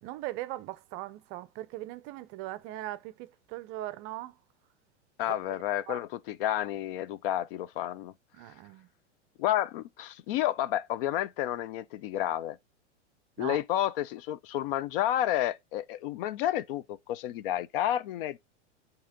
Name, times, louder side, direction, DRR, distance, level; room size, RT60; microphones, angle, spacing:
voice 1, 0.0-4.4 5.5-5.6 5.9-6.0 8.3-8.9 13.4-13.6, right 16 dB, 35° right, 0.5 m, -39 dB
voice 2, 5.2-8.1 9.4-12.6 13.4-18.4, left 12 dB, 50° left, 0.5 m, -30 dB
8.6 x 3.0 x 3.7 m
hypercardioid pair, 115°, 36 cm